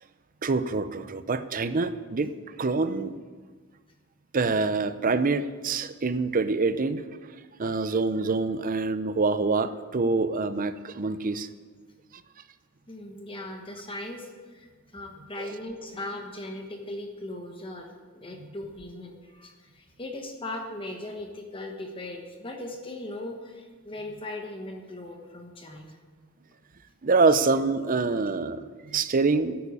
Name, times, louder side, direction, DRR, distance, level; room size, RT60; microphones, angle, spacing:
voice 1, 0.4-2.3 2.6-3.1 4.3-7.0 7.6-11.5 15.4-15.5 27.0-29.6, right 3 dB, 40° right, 12 dB, 0.6 m, -25 dB
voice 2, 12.9-26.0, left 1 dB, 25° left, 3 dB, 1.2 m, -39 dB
10.5 x 8.6 x 8.3 m, 1.4 s
head